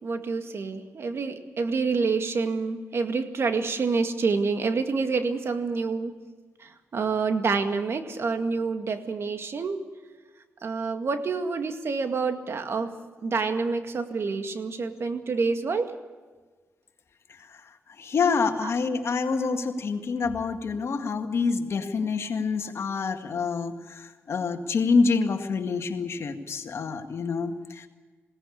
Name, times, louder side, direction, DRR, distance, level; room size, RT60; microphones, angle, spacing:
voice 1, 0.0-6.1 6.6-9.8 10.6-12.9 13.2-15.9 18.6-18.7, right 4 dB, 60° right, 7 dB, 2.0 m, -27 dB
voice 2, 18.0-27.9, left 4 dB, 65° left, 6 dB, 2.0 m, -27 dB
21.0 x 17.5 x 8.6 m, 1.4 s
cardioid pair, 65°, 5 cm